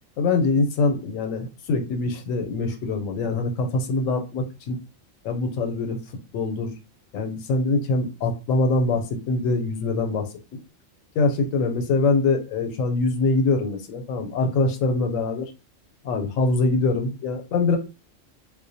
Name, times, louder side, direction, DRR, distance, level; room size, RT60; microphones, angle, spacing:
voice 1, 0.2-4.8 5.2-6.0 6.3-6.7 7.1-10.3 11.2-15.5 16.0-17.8, left 3 dB, 85° left, 5 dB, 1.0 m, -23 dB
2.4 x 2.1 x 2.6 m, 0.29 s
omnidirectional pair, 1.3 m